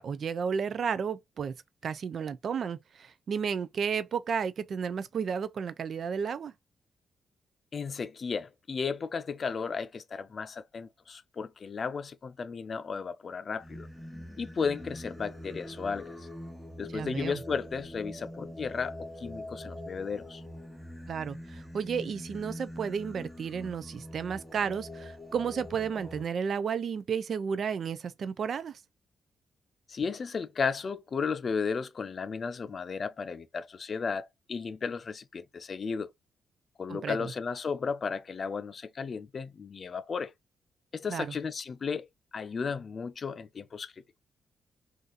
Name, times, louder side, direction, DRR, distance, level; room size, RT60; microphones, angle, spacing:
voice 1, 0.0-1.5 1.8-6.5 16.9-17.4 21.1-28.8 36.9-37.2 41.1-41.4, right 6 dB, 55° right, 0.3 m, -32 dB
voice 2, 7.7-13.9 14.4-16.2 16.8-20.4 29.9-36.1 36.8-40.3 40.9-42.1 42.3-43.9, left 5 dB, 40° left, 0.3 m, -34 dB
Singing, 13.6-26.2, left 1 dB, 5° right, 0.8 m, -44 dB
3.9 x 2.5 x 2.4 m
cardioid pair, 125°, 0 cm